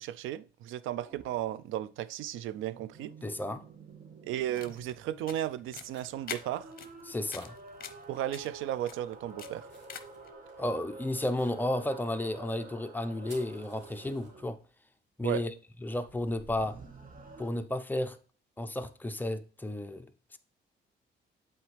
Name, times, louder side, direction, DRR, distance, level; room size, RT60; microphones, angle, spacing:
voice 1, 0.0-3.1 4.2-6.7 8.1-9.7 15.2-15.4, right 12 dB, 85° right, 0.4 m, -35 dB
sound 1, 1.0-1.4 2.5-4.9 5.6-14.6 16.0-17.5, right 3 dB, 45° right, 1.3 m, -50 dB
voice 2, 3.2-3.6 7.1-7.5 10.6-14.6 15.2-15.5 15.8-16.8 17.4-18.2 18.6-20.4, left 1 dB, 10° left, 0.7 m, -33 dB
sound 2, 3.7-4.0 4.4-4.7 5.5-6.3 6.6-6.7 6.9-7.0 7.4-8.4 8.7-14.8 15.1-17.6, right 2 dB, 65° right, 2.6 m, -60 dB
sound 3, 4.4-10.3, left 8 dB, 50° left, 0.8 m, -47 dB
7.7 x 4.3 x 3.3 m
cardioid pair, 90°, 20 cm